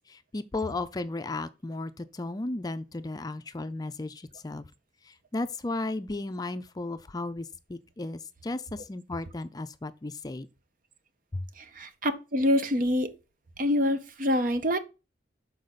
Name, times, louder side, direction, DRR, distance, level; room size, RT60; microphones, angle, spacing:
voice 1, 0.0-4.7 5.0-10.5 11.3-11.5, left 2 dB, 20° left, 0.4 m, -35 dB
voice 2, 11.6-13.1 13.6-14.8, left 1 dB, 50° right, 0.8 m, -26 dB
6.5 x 4.6 x 4.1 m
head